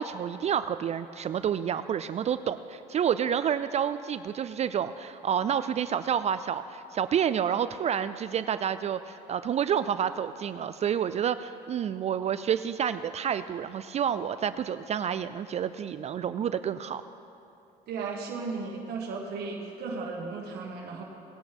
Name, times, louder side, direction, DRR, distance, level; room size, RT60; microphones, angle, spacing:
voice 1, 0.0-17.0, right 8 dB, 40° right, 12 dB, 0.4 m, -29 dB
voice 2, 17.9-21.0, right 4 dB, 70° right, -2 dB, 1.7 m, -35 dB
19.0 x 10.5 x 3.5 m, 2.8 s
cardioid pair, 110°, 17 cm